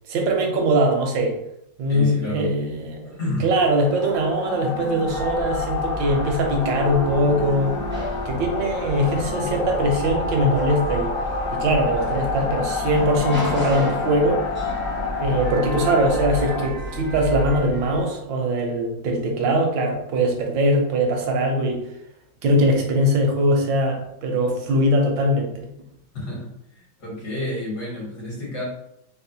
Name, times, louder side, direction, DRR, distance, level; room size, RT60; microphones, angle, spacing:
voice 1, 0.1-1.4 1.8-7.7 8.2-11.1 11.5-14.4 15.2-21.8 22.4-25.7, right 1 dB, 80° right, 2 dB, 1.4 m, -21 dB
voice 2, 1.9-2.5 3.2-3.5 26.1-26.5 27.0-28.6, left 1 dB, 60° left, -5 dB, 1.9 m, -29 dB
sound 1, 3.7-16.7, left 4 dB, 90° left, 1.3 m, -30 dB
sound 2, 5.0-18.0, left 1 dB, 10° right, 0.5 m, -31 dB
4.1 x 2.1 x 2.7 m, 0.81 s
omnidirectional pair, 2.0 m